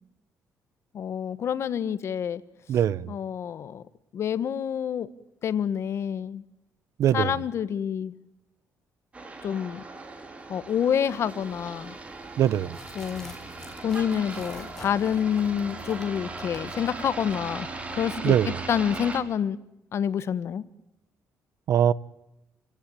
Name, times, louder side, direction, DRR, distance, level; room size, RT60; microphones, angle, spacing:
voice 1, 0.9-2.4 3.1-3.8 4.1-5.1 5.4-6.4 7.1-8.1 9.4-9.8 10.5-12.0 12.9-13.3 13.8-17.7 17.9-19.6 19.9-20.7, left 8 dB, 50° left, 1.3 m, -28 dB
voice 2, 2.7-3.1 7.0-7.3 12.4-12.8 18.2-18.6 21.7-21.9, right 10 dB, 60° right, 0.9 m, -22 dB
sound 1, 9.1-19.2, right 3 dB, 20° right, 3.5 m, -39 dB
sound 2, 11.4-18.5, left 2 dB, 10° left, 4.2 m, -50 dB
29.0 x 17.5 x 8.7 m
cardioid pair, 140°, 6 cm